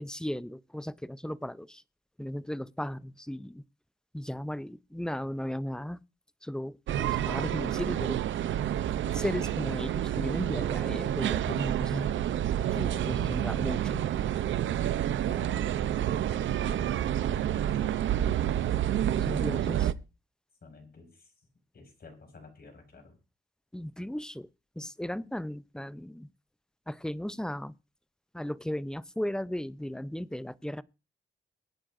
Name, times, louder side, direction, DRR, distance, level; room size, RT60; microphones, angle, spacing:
voice 1, 0.0-1.8 2.2-3.6 4.1-6.0 6.4-8.2 9.1-12.1 12.7-14.0 19.2-19.9 23.7-24.5 24.8-26.3 26.9-27.7 28.3-30.8, left 1 dB, 5° left, 0.6 m, -36 dB
sound 1, 6.9-19.9, right 11 dB, 90° right, 0.6 m, -29 dB
voice 2, 15.3-18.9 20.6-21.5 21.7-23.2, left 3 dB, 55° left, 6.0 m, -52 dB
23.0 x 9.5 x 2.6 m
cardioid pair, 65°, 19 cm